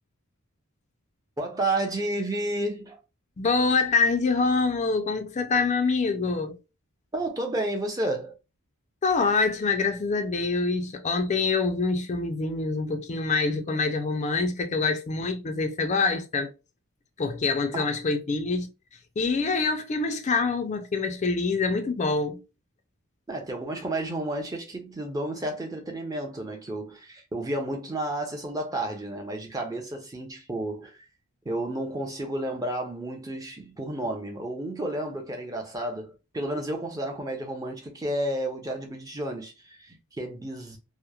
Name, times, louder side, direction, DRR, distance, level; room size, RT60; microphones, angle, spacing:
voice 1, 1.4-3.0 7.1-8.3 17.7-17.9 23.3-31.0 31.4-40.8, right 1 dB, 15° right, 0.5 m, -31 dB
voice 2, 3.4-6.6 9.0-16.5 17.2-18.7 19.2-22.4, left 4 dB, 30° left, 0.3 m, -25 dB
2.9 x 2.0 x 2.3 m
head